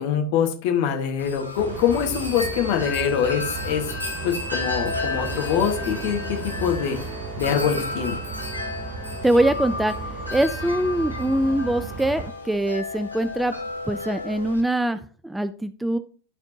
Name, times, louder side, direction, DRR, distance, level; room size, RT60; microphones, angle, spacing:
voice 1, 0.0-3.8 4.2-7.0 7.4-8.2, left 8 dB, 50° left, 4 dB, 1.5 m, -24 dB
Wind chime, 1.2-14.6, left 2 dB, 85° right, 2.0 m, -33 dB
sound 1, 1.6-12.3, right 5 dB, 35° right, 0.9 m, -35 dB
voice 2, 9.2-9.9 10.3-13.6 13.9-16.0, right 1 dB, 5° right, 13 dB, 0.4 m, -23 dB
12.5 x 4.3 x 2.8 m, 0.41 s
figure-of-eight pair, 90°, 0 cm